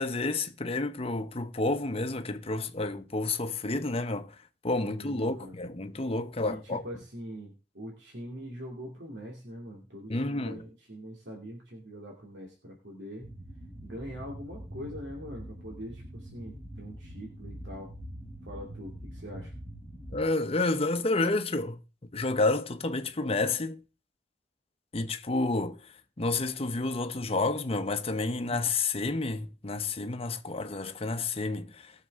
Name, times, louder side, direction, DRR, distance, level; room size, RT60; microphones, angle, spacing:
voice 1, 0.0-4.3 4.6-6.8 10.1-10.6 20.1-21.8 22.1-23.8 24.9-25.8 26.2-31.9, left 2 dB, 35° left, 0.8 m, -30 dB
voice 2, 4.8-5.6 6.5-13.3 13.8-17.9 18.4-19.5 28.4-28.6, equal, 80° right, 2.5 m, -43 dB
sound 1, 13.2-20.2, equal, 35° right, 7.7 m, -44 dB
19.5 x 6.7 x 3.6 m
head